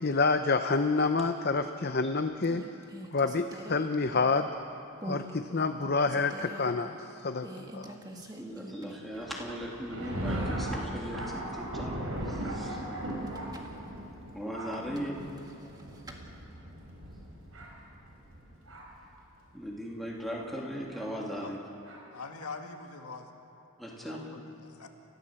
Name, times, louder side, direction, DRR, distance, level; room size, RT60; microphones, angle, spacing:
voice 1, 0.0-2.6 3.1-4.5 5.0-7.9, left 3 dB, 45° left, 7 dB, 0.7 m, -28 dB
sound 1, 1.6-2.0 2.4-4.6 5.0-5.3 5.7-6.7 7.4-9.2 9.5-9.6 13.1-13.8 14.7-16.2, right 1 dB, 15° right, 1.7 m, -45 dB
voice 2, 8.4-11.5 11.7-11.9 12.3-12.8 14.3-15.2 19.5-21.6 23.8-24.2, equal, ahead, -3 dB, 3.0 m, -38 dB
Thunder, 9.1-19.1 19.8-19.9 20.9-21.1 21.8-22.0, right 1 dB, 65° right, 5.0 m, -38 dB
voice 3, 22.1-23.3 24.0-24.9, left 4 dB, 85° left, 3 dB, 2.1 m, -43 dB
29.5 x 15.5 x 7.7 m, 2.8 s
head